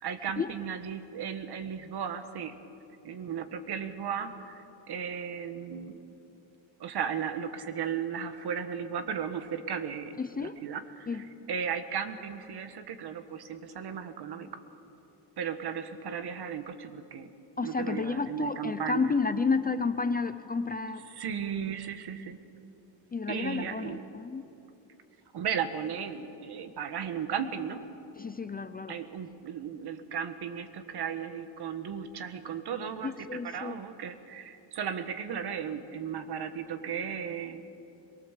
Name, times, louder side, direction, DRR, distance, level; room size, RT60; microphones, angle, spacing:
voice 1, 0.0-2.6 3.0-6.0 6.8-14.6 15.4-17.3 17.6-19.1 21.1-22.4 23.3-24.0 25.3-27.8 28.9-37.7, right 7 dB, 60° right, 9 dB, 1.6 m, -35 dB
voice 2, 10.2-10.6 11.1-11.2 17.6-21.1 23.1-24.5 28.2-29.0 33.0-33.8, left 4 dB, 20° left, 10 dB, 0.5 m, -31 dB
22.5 x 22.5 x 7.5 m, 2.9 s
cardioid pair, 160°, 44 cm